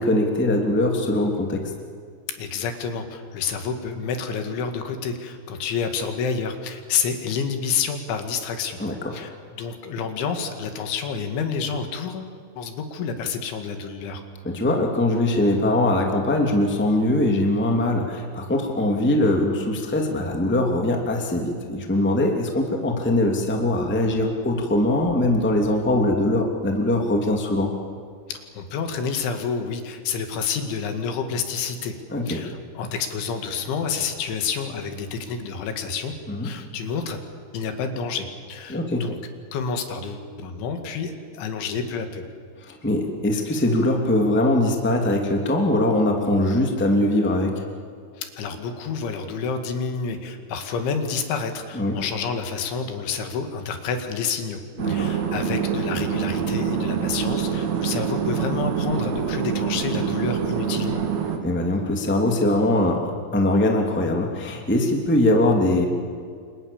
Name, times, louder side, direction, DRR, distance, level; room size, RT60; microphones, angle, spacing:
voice 1, 0.0-1.6 8.8-8.9 14.4-27.7 32.1-32.4 36.3-36.5 38.7-39.0 42.6-47.6 51.7-52.0 54.8-55.1 61.4-63.0 63.3-65.8, left 1 dB, 5° left, 2 dB, 1.6 m, -21 dB
voice 2, 2.4-8.8 9.1-9.3 9.6-14.2 28.3-31.9 32.3-36.1 36.4-37.2 37.5-39.2 39.5-42.2 48.2-54.6 54.9-61.0, left 5 dB, 75° left, 6 dB, 4.4 m, -29 dB
sound 1, 54.8-61.4, right 7 dB, 50° right, 2.5 m, -25 dB
29.5 x 26.0 x 7.3 m, 2.1 s
omnidirectional pair, 5.5 m